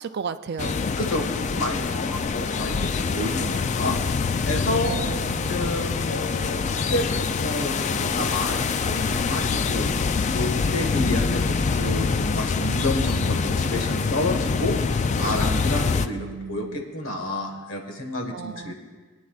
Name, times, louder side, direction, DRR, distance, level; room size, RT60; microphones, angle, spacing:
voice 1, 0.0-0.8 4.9-5.7 16.1-16.9 18.3-18.7, right 5 dB, 50° right, 12 dB, 0.4 m, -34 dB
sound 1, 0.6-16.1, left 5 dB, 30° left, 0.3 m, -25 dB
voice 2, 1.0-4.0 4.5-5.0 5.5-9.9 10.3-14.8 15.2-18.7, left 1 dB, 65° left, 3 dB, 1.4 m, -30 dB
22.0 x 9.5 x 2.4 m, 1.5 s
head